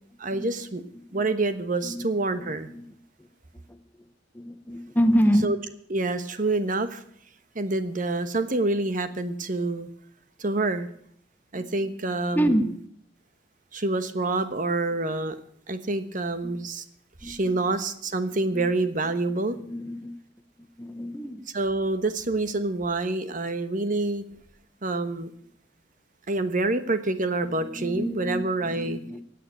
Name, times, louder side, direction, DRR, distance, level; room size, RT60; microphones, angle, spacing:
voice 1, 0.2-0.8 1.1-2.7 5.4-5.6 5.9-7.0 7.5-9.9 10.4-10.9 11.5-12.7 13.7-15.4 15.7-16.8 17.2-19.6 21.5-24.2 24.8-25.3 26.3-29.0, right 2 dB, 45° right, 11 dB, 1.2 m, -27 dB
voice 2, 0.9-1.3 1.8-2.1 2.4-3.3 3.7-3.8 4.3-5.5 11.5-11.7 12.3-12.7 16.4-16.6 17.2-17.5 18.5-18.7 19.5-20.2 20.8-21.4 27.5-29.2, equal, 10° left, 9 dB, 0.9 m, -27 dB
16.5 x 8.8 x 8.9 m, 0.66 s
head